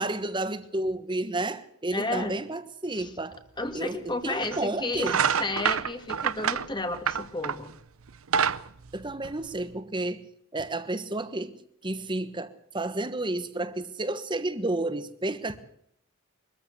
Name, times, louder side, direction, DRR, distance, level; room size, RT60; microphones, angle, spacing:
voice 1, 0.0-3.4 3.7-5.2 8.9-10.3 10.5-15.6, right 2 dB, 20° right, 1.3 m, -31 dB
voice 2, 1.9-2.3 2.9-3.1 3.6-5.1 5.4-7.7, left 2 dB, 20° left, 2.0 m, -32 dB
sound 1, 3.7-3.8 4.4-4.6 5.0-7.7 8.1-9.7, right 7 dB, 80° right, 0.8 m, -27 dB
23.5 x 14.5 x 8.1 m
head